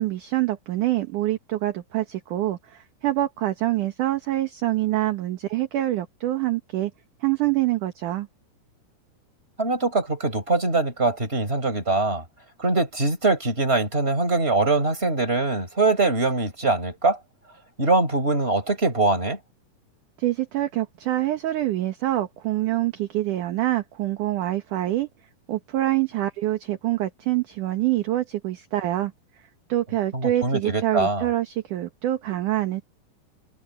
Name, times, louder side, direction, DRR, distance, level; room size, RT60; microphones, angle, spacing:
voice 1, 0.0-6.9 7.2-8.3 20.2-25.1 25.5-29.1 29.7-32.8, right 15 dB, 65° right, 2.4 m, -25 dB
voice 2, 9.6-12.2 12.6-17.2 17.8-19.4 30.1-31.3, right 3 dB, 15° right, 5.7 m, -23 dB
omnidirectional pair, 4.6 m